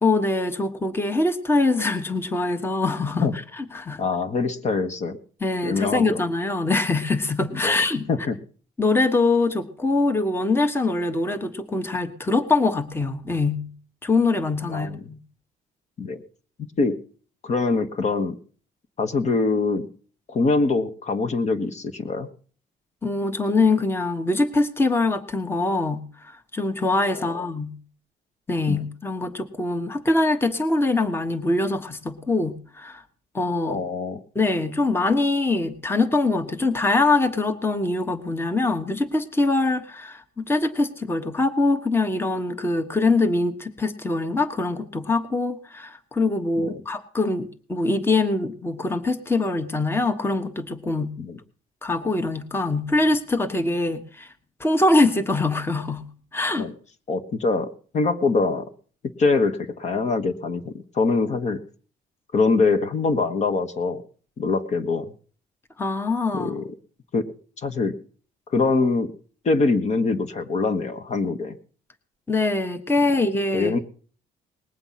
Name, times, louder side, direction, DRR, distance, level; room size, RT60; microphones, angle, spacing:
voice 1, 0.0-4.0 5.4-8.1 8.8-13.7 14.0-15.2 23.0-27.8 28.5-33.0 33.3-33.8 34.3-51.1 51.8-54.3 54.6-56.0 56.3-56.7 65.8-66.6 72.3-73.7, left 2 dB, 15° left, 9 dB, 1.3 m, -23 dB
voice 2, 4.0-5.2 5.6-6.2 7.5-8.3 14.7-15.0 16.0-16.2 16.8-16.9 17.4-18.4 19.0-19.8 20.3-22.3 27.3-27.4 28.7-28.8 33.6-34.2 46.6-46.8 51.2-51.4 56.6-56.7 57.1-58.6 59.2-61.6 62.3-64.0 64.4-65.1 66.3-66.6 67.1-67.2 67.6-67.9 68.5-69.1 69.4-71.5 73.5-73.8, left 3 dB, 45° left, 7 dB, 1.4 m, -23 dB
20.0 x 7.9 x 5.8 m, 0.44 s
cardioid pair, 110°, 17 cm